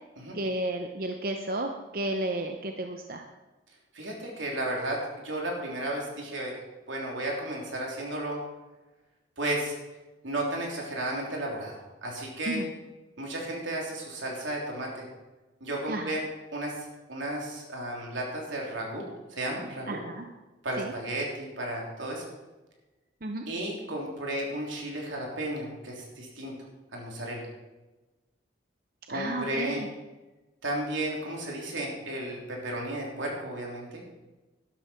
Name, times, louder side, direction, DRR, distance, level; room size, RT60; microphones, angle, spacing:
voice 1, 0.3-3.2 12.5-12.7 15.9-16.2 19.9-20.2 20.8-20.9 23.2-23.4 29.1-29.9, right 1 dB, 50° right, 4 dB, 0.8 m, -32 dB
voice 2, 3.9-6.5 6.9-8.4 9.4-9.7 10.2-12.6 13.2-15.1 15.6-16.2 16.5-19.0 19.3-20.0 20.6-22.2 23.5-26.5 26.9-27.5 29.1-29.8 30.6-34.0, right 1 dB, 85° right, -1 dB, 3.4 m, -33 dB
12.0 x 12.0 x 4.5 m, 1.1 s
head